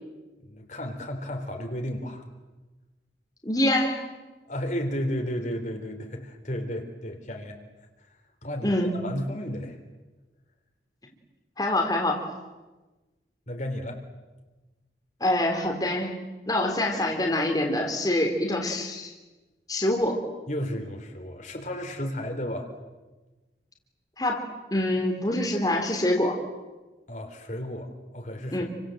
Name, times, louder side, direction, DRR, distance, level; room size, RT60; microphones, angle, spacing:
voice 1, 0.4-2.2 4.5-7.6 8.4-8.8 9.0-9.8 13.5-14.0 20.5-22.7 27.1-28.6, equal, 40° left, 3 dB, 3.8 m, -33 dB
voice 2, 3.4-4.0 8.6-8.9 11.6-12.2 15.2-16.1 16.5-19.1 19.7-20.2 24.2-24.4 24.7-26.4 28.5-28.6, left 1 dB, 20° left, 0 dB, 3.5 m, -25 dB
29.5 x 25.5 x 7.9 m, 1.2 s
head